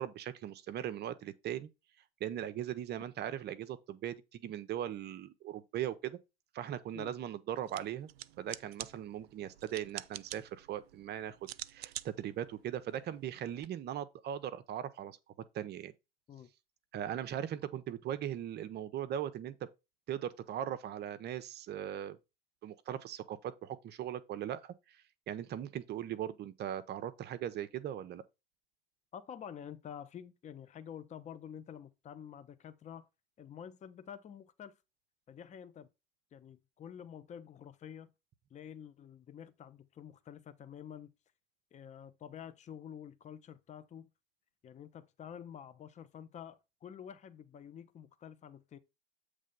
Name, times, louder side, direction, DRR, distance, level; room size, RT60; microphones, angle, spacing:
voice 1, 0.0-1.7 2.2-6.2 6.5-8.1 8.4-11.4 11.7-15.2 15.5-15.9 16.9-19.6 20.1-22.2 22.6-28.2, right 11 dB, 35° right, 0.7 m, -39 dB
sound 1, 7.6-13.7, right 14 dB, 85° right, 0.4 m, -48 dB
voice 2, 29.1-33.1 33.4-34.8 35.3-35.9 36.3-38.1 38.5-41.1 41.7-44.1 44.6-48.8, left 8 dB, 25° left, 0.7 m, -49 dB
7.4 x 3.3 x 5.3 m
hypercardioid pair, 95°, 30 cm